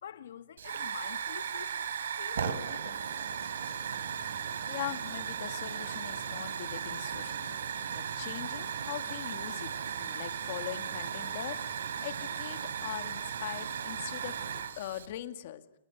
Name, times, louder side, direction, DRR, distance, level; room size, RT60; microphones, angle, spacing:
voice 1, 0.0-3.0, left 9 dB, 60° left, 1.5 m, -46 dB
Hiss / Fire, 0.6-15.1, right 7 dB, 70° right, 3.5 m, -36 dB
voice 2, 4.7-7.6 7.9-15.6, left 13 dB, 40° left, 2.1 m, -41 dB
29.5 x 21.0 x 9.4 m
hypercardioid pair, 180°, 0 cm